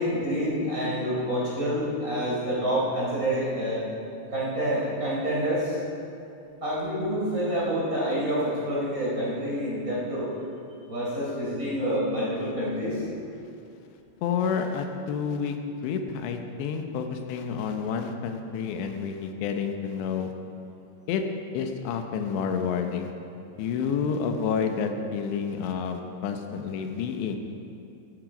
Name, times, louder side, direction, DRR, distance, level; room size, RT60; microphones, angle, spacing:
voice 1, 0.0-3.8 4.3-5.8 6.6-10.3 10.9-13.0, equal, 20° right, -7 dB, 3.9 m, -27 dB
voice 2, 14.2-15.6 15.8-20.3 21.1-21.2 21.5-23.1 23.6-27.4, left 6 dB, 85° left, 5 dB, 3.1 m, -29 dB
14.0 x 12.0 x 5.0 m, 2.6 s
omnidirectional pair, 5.0 m